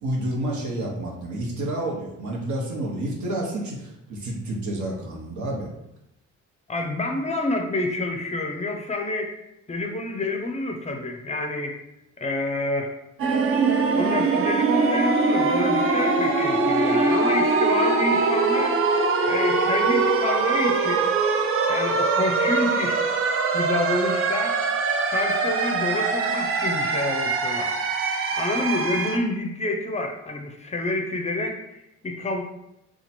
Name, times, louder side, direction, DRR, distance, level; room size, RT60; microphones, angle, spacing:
voice 1, 0.0-5.7, right 1 dB, 70° right, -1 dB, 1.0 m, -29 dB
voice 2, 6.7-9.3 9.7-11.8 12.2-12.9 13.9-18.8 19.3-21.1 21.7-23.1 23.5-24.6 25.1-27.7 28.4-32.4, left 2 dB, 25° left, 3 dB, 0.5 m, -28 dB
sound 1, 13.2-29.2, right 4 dB, 45° right, 0.5 m, -22 dB
2.9 x 2.3 x 4.2 m, 0.85 s
cardioid pair, 90°, 30 cm